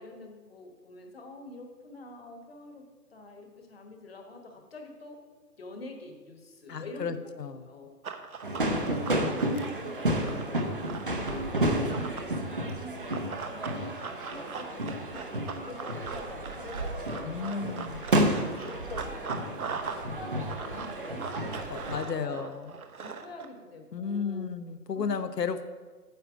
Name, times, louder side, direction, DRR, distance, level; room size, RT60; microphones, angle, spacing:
voice 1, 0.0-2.8 3.1-5.2 5.6-7.3 7.6-7.9 8.7-17.9 18.6-22.4 23.0-24.4 24.9-25.4, left 2 dB, 40° left, 4 dB, 1.3 m, -46 dB
voice 2, 6.7-7.7 17.3-18.0 21.7-22.7 23.9-25.7, left 6 dB, 80° left, 11 dB, 1.0 m, -33 dB
Run, 8.0-12.3 13.1-20.1 20.3-23.5, right 5 dB, 60° right, 1.0 m, -40 dB
sound 1, 8.4-22.0, right 1 dB, 35° right, 0.7 m, -31 dB
9.1 x 7.4 x 5.0 m, 1.4 s
hypercardioid pair, 165°, 48 cm